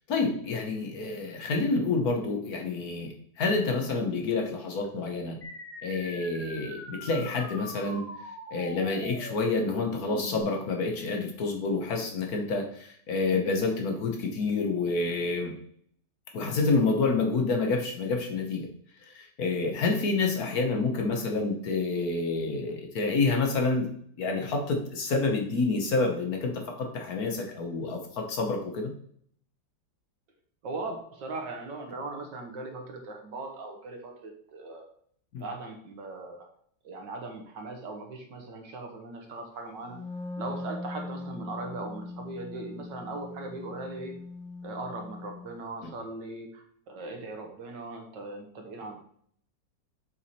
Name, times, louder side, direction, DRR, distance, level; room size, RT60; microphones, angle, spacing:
voice 1, 0.0-5.4 5.8-8.1 8.5-15.5 16.3-18.7 19.0-23.9 24.2-28.9 35.3-35.5 45.8-45.9, left 3 dB, 60° left, 2 dB, 1.5 m, -28 dB
sound 1, 5.4-10.4, left 1 dB, 10° left, 1.2 m, -42 dB
voice 2, 30.6-34.9 35.4-36.5 36.8-40.0 40.4-44.1 44.6-49.0, right 2 dB, 75° right, 3 dB, 1.9 m, -39 dB
Wind instrument woodwind instrument, 39.9-45.6, left 3 dB, 40° left, 0.8 m, -40 dB
7.1 x 4.7 x 4.3 m, 0.62 s
omnidirectional pair, 1.9 m